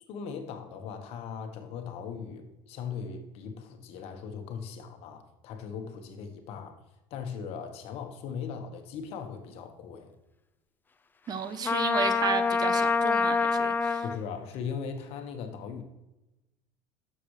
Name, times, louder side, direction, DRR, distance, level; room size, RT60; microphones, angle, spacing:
voice 1, 0.1-6.8 7.1-10.1 14.0-15.8, left 6 dB, 60° left, 6 dB, 1.4 m, -39 dB
voice 2, 11.3-14.0, right 6 dB, 35° right, 11 dB, 0.8 m, -33 dB
Trumpet, 11.6-14.2, left 4 dB, 15° left, 0.5 m, -26 dB
11.5 x 6.9 x 3.3 m, 0.98 s
supercardioid pair, 105°, 12 cm